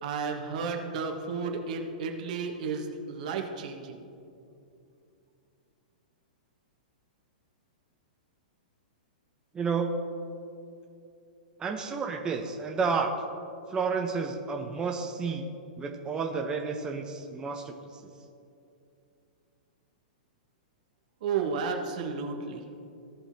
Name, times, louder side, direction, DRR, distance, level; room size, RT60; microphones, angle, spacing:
voice 1, 0.0-4.0 21.2-22.6, right 5 dB, 60° right, 2 dB, 1.5 m, -32 dB
voice 2, 9.5-10.2 11.6-13.1 13.7-15.5 15.8-18.0, right 5 dB, 20° right, 1 dB, 0.8 m, -31 dB
17.0 x 5.7 x 2.8 m, 2.6 s
hypercardioid pair, 115°, 5 cm